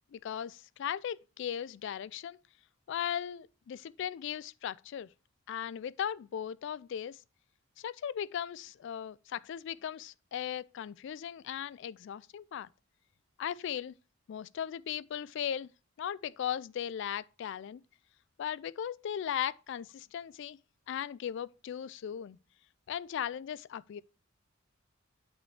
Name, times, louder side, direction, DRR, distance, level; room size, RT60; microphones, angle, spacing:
voice 1, 0.1-2.4 2.9-5.1 5.5-7.2 7.8-12.7 13.4-14.0 14.3-15.7 16.0-17.8 18.4-20.6 20.9-22.4 22.9-24.0, left 9 dB, 65° left, 0.3 m, -37 dB
9.0 x 5.4 x 3.3 m
head